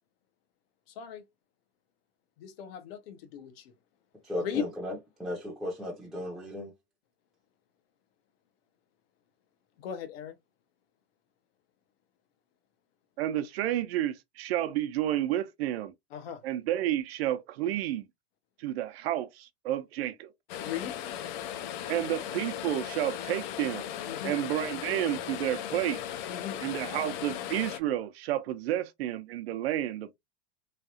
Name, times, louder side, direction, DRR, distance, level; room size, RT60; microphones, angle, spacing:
voice 1, 1.0-1.3 2.4-3.7 4.4-4.7 9.8-10.4 16.1-16.4 20.6-21.0 24.0-24.4 26.3-26.6, left 8 dB, 65° left, 0.9 m, -37 dB
voice 2, 4.3-4.9 5.2-6.7, left 1 dB, ahead, 0.7 m, -35 dB
voice 3, 13.2-15.9 16.4-18.0 18.6-20.3 21.9-23.9 24.2-26.0 26.6-30.2, right 12 dB, 65° right, 0.7 m, -31 dB
sound 1, 20.5-27.8, left 10 dB, 45° left, 0.5 m, -37 dB
3.3 x 2.3 x 2.7 m
supercardioid pair, 150°, 33 cm